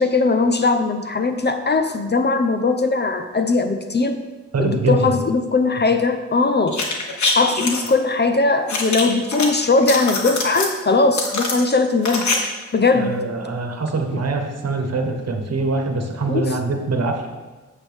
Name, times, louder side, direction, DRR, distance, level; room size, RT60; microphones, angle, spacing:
voice 1, 0.0-4.2 4.6-6.8 7.3-12.3 12.7-13.2 14.1-14.2 16.3-16.6, left 3 dB, 35° left, 8 dB, 0.7 m, -19 dB
voice 2, 4.5-5.1 13.0-17.3, right 3 dB, 55° right, 4 dB, 1.3 m, -23 dB
sound 1, 6.7-7.9 8.7-9.5 9.8-10.7 11.1-12.4 12.6-12.7, left 3 dB, 65° left, 1.4 m, -24 dB
8.2 x 7.3 x 3.5 m, 1.3 s
cardioid pair, 65°, 31 cm